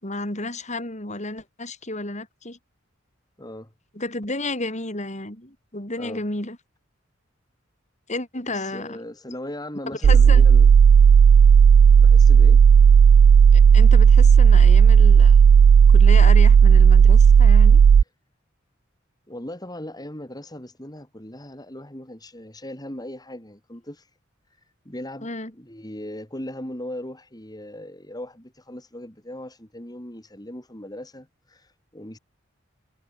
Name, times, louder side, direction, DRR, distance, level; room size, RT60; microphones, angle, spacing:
voice 1, 0.0-2.6 3.9-6.6 8.1-9.0 9.9-10.5 13.5-15.4 15.9-17.8 25.2-25.5, left 2 dB, 35° left, 6.1 m, -32 dB
voice 2, 3.4-3.7 6.0-6.2 8.5-10.7 12.0-12.6 19.3-24.1 24.8-25.3 25.5-32.2, left 1 dB, 20° left, 5.1 m, -38 dB
sound 1, 10.0-18.0, right 7 dB, 85° right, 0.3 m, -12 dB
head